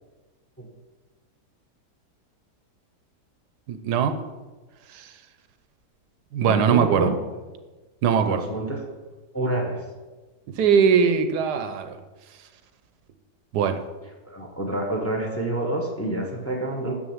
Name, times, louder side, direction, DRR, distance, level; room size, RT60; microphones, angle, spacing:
voice 1, 3.7-4.2 4.9-5.1 6.3-7.1 8.0-8.5 10.5-12.0 13.5-13.8, right 7 dB, 80° right, 9 dB, 1.3 m, -21 dB
voice 2, 6.4-7.1 8.3-8.8 9.3-9.8 14.3-16.9, right 1 dB, 10° left, 2 dB, 1.0 m, -28 dB
7.2 x 6.3 x 7.3 m, 1.3 s
omnidirectional pair, 1.8 m